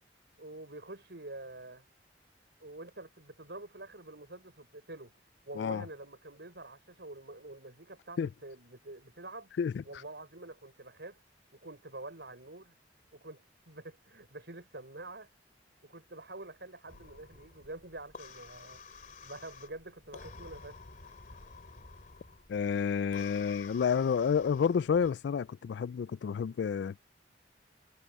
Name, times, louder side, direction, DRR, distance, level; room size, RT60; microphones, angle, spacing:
voice 1, 0.4-1.8 2.6-5.1 5.5-9.5 9.8-11.2 11.5-12.7 13.1-15.3 15.8-18.8 19.2-20.8, right 2 dB, 70° right, 5.7 m, -47 dB
voice 2, 5.6-5.9 8.2-8.3 9.6-9.8 22.5-27.0, left 6 dB, 70° left, 0.3 m, -30 dB
sound 1, 16.9-25.1, left 4 dB, 50° left, 2.6 m, -51 dB
head